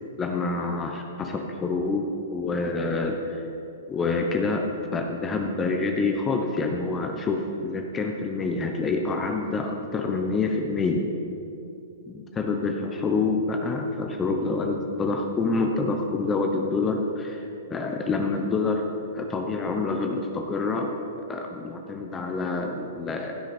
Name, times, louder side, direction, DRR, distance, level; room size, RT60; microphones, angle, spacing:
voice 1, 0.2-3.5 3.9-4.6 4.9-11.1 12.1-18.8 19.1-20.9 21.3-23.4, left 3 dB, 20° left, 3 dB, 0.8 m, -27 dB
16.0 x 6.5 x 4.4 m, 2.8 s
hypercardioid pair, 135°, 0 cm